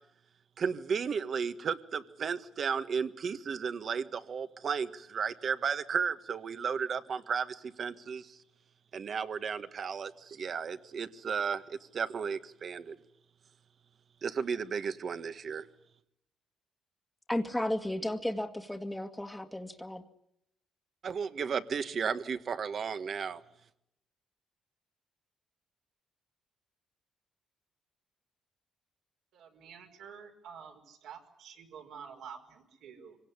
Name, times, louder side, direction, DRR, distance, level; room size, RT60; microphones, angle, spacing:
voice 1, 0.6-8.4 8.9-13.0 14.2-15.7 21.0-23.4, right 6 dB, 50° right, 10 dB, 1.8 m, -34 dB
voice 2, 17.3-20.0, left 1 dB, 10° left, 6 dB, 1.9 m, -34 dB
voice 3, 29.3-33.2, right 7 dB, 80° right, 2 dB, 5.5 m, -49 dB
25.0 x 17.5 x 9.9 m, 0.79 s
cardioid pair, 90°, 0 cm